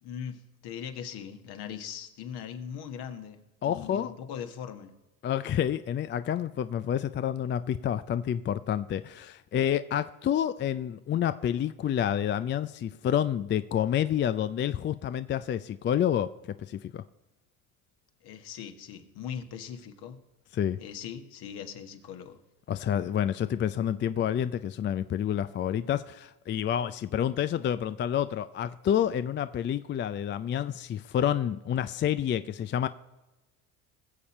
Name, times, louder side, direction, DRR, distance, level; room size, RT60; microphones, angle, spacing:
voice 1, 0.0-4.9 18.2-20.2 20.8-22.4, left 8 dB, 60° left, 7 dB, 1.6 m, -40 dB
voice 2, 3.6-4.1 5.2-16.3 16.6-17.0 20.5-20.8 22.7-32.9, left 9 dB, 30° left, 13 dB, 0.4 m, -29 dB
21.0 x 7.1 x 4.3 m, 1.1 s
supercardioid pair, 85°, 44 cm